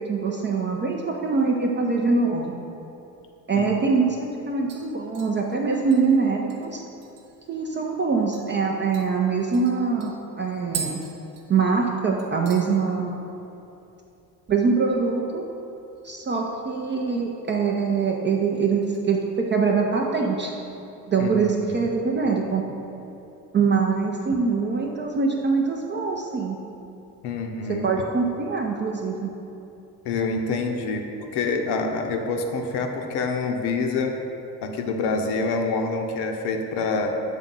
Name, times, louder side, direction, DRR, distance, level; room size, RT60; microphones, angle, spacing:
voice 1, 0.0-2.6 3.5-6.8 7.5-11.0 11.5-13.4 14.5-15.4 16.0-20.5 21.1-22.6 23.5-26.6 27.7-29.3, right 4 dB, 25° right, 0 dB, 0.5 m, -23 dB
sound 1, 4.7-7.5 7.9-8.0 8.3-8.5 8.9-11.9 12.2-12.7 13.0-13.4 13.7-13.8 15.9-16.5 16.9-17.6 18.0-18.3 18.8-19.7 20.1-20.2, right 6 dB, 65° right, 1.0 m, -41 dB
voice 2, 21.2-21.9 27.2-27.9 30.0-31.0 31.3-34.1 34.6-37.1, left 4 dB, 55° left, 3 dB, 0.7 m, -26 dB
7.4 x 3.5 x 3.9 m, 2.9 s
figure-of-eight pair, 50°, 49 cm